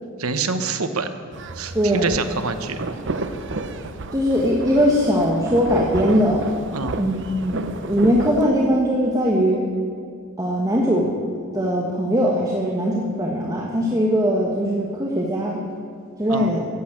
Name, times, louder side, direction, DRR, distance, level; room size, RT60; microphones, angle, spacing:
voice 1, 0.2-1.1 1.5-2.8 6.7-7.0 16.3-16.5, right 4 dB, 85° right, 9 dB, 1.0 m, -26 dB
sound 1, 1.3-8.5, right 3 dB, 60° right, 0.8 m, -31 dB
voice 2, 1.7-2.1 4.1-6.4 7.0-7.1 7.4-9.6 10.4-11.1 11.5-15.6 16.2-16.7, equal, 15° right, -2 dB, 1.3 m, -20 dB
14.0 x 8.3 x 8.8 m, 2.4 s
head